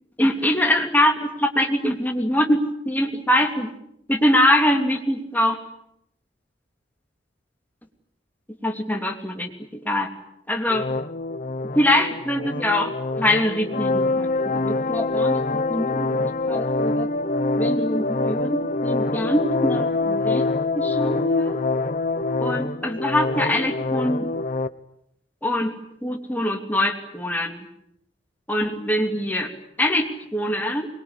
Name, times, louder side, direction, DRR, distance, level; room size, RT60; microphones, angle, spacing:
voice 1, 0.2-3.7 4.1-5.6 8.6-10.1 10.5-10.9 11.7-15.4 15.7-17.1 17.6-20.4 20.7-21.6 22.4-24.3 25.4-27.7 28.5-29.5 29.8-30.9, left 1 dB, 10° left, 4 dB, 3.0 m, -23 dB
sound 1, 10.7-24.7, left 2 dB, 45° left, 1.1 m, -25 dB
24.5 x 23.0 x 9.9 m, 0.77 s
head